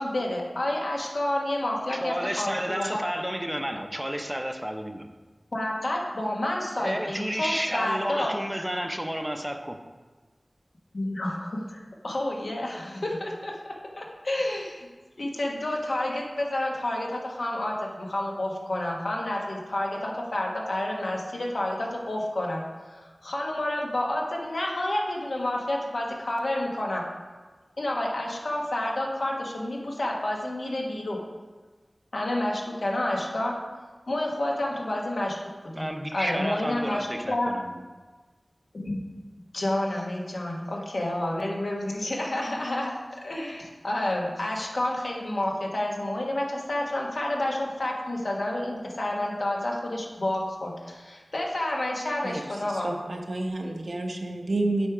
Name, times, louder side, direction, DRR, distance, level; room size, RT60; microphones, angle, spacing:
voice 1, 0.0-3.0 5.5-8.3 10.9-14.9 15.2-22.6 22.9-27.0 27.8-31.2 32.1-33.6 34.1-35.4 35.6-35.7 36.1-37.5 38.7-39.0 39.5-53.0, left 1 dB, 75° left, -1 dB, 1.3 m, -29 dB
voice 2, 1.9-5.2 6.8-9.8 35.7-37.8, equal, 10° right, 6 dB, 0.6 m, -31 dB
voice 3, 52.7-54.9, right 2 dB, 75° right, 2 dB, 0.9 m, -29 dB
8.6 x 4.8 x 4.8 m, 1.3 s
wide cardioid pair, 65°, 0 cm